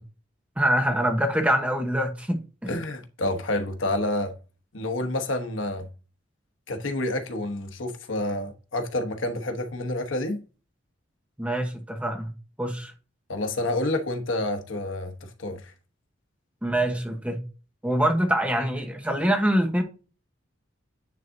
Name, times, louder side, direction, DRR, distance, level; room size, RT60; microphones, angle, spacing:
voice 1, 0.6-2.7 11.4-12.3 12.6-12.9 16.6-17.4 17.8-19.8, right 1 dB, 5° right, 1.0 m, -24 dB
voice 2, 2.7-4.3 4.7-5.9 6.7-10.4 13.3-15.7, left 1 dB, 85° left, 1.1 m, -29 dB
9.5 x 3.7 x 2.6 m
head